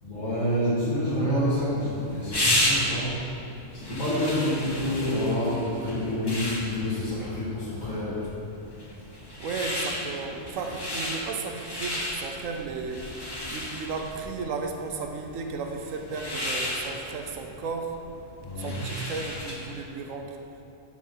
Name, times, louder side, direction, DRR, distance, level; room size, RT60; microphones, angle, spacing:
voice 1, 0.0-3.1 3.7-8.2 18.4-18.8, equal, 75° left, -12 dB, 2.4 m, -28 dB
sound 1, 1.3-19.8, left 1 dB, 20° left, 0.8 m, -33 dB
voice 2, 9.4-13.0 13.5-17.9 18.6-20.4, right 4 dB, 85° right, 4 dB, 1.1 m, -34 dB
11.0 x 4.8 x 3.8 m, 2.8 s
omnidirectional pair, 1.3 m